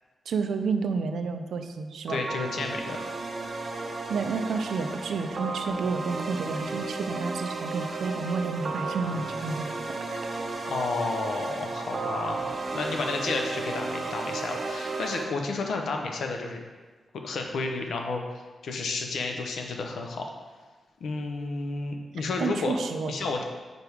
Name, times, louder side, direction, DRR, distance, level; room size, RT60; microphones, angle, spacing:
voice 1, 0.3-2.2 4.1-9.7 22.4-23.1, right 4 dB, 80° right, 7 dB, 0.5 m, -30 dB
voice 2, 2.1-3.1 10.7-16.6 17.2-18.2 18.6-20.3 21.0-22.8 23.1-23.4, left 3 dB, 80° left, 3 dB, 0.7 m, -31 dB
sound 1, 2.1-15.2, right 3 dB, 35° right, 0.6 m, -34 dB
5.2 x 4.7 x 4.8 m, 1.4 s
wide cardioid pair, 160°, 0 cm